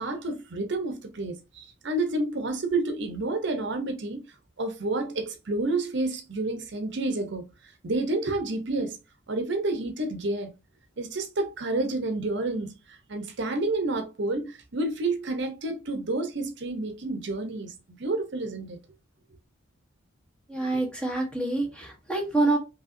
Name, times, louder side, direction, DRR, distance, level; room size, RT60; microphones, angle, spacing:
voice 1, 0.0-4.2 4.6-7.4 7.8-9.0 9.3-10.5 11.0-18.8, right 2 dB, 60° right, 0.7 m, -29 dB
voice 2, 20.5-22.6, right 2 dB, 5° left, 1.1 m, -26 dB
5.3 x 2.7 x 2.6 m
head